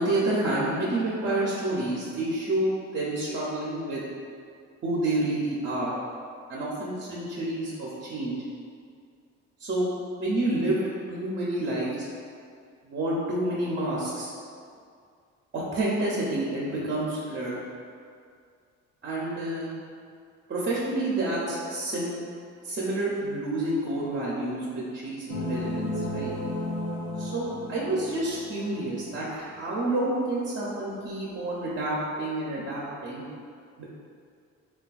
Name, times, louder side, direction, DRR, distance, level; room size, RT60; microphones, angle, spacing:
voice 1, 0.0-4.0 4.8-6.0 6.5-8.3 9.6-9.9 10.2-12.0 12.8-14.3 15.5-17.6 19.0-19.8 20.5-22.1 22.6-26.3 27.2-33.2 33.8-33.9, right 1 dB, 40° right, -6 dB, 0.5 m, -29 dB
sound 1, 25.3-29.3, left 1 dB, 80° left, 0.6 m, -34 dB
3.2 x 2.2 x 2.3 m, 2.2 s
cardioid pair, 90°, 30 cm